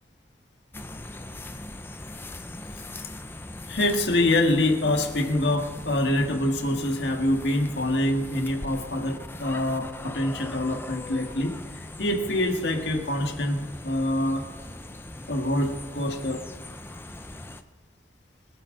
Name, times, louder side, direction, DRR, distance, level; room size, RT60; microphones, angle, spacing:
sound 1, 0.7-17.6, left 1 dB, 10° left, 0.6 m, -40 dB
voice 1, 3.7-14.5 15.3-16.4, left 1 dB, 65° left, 2 dB, 1.8 m, -25 dB
24.5 x 9.0 x 3.9 m, 1.5 s
head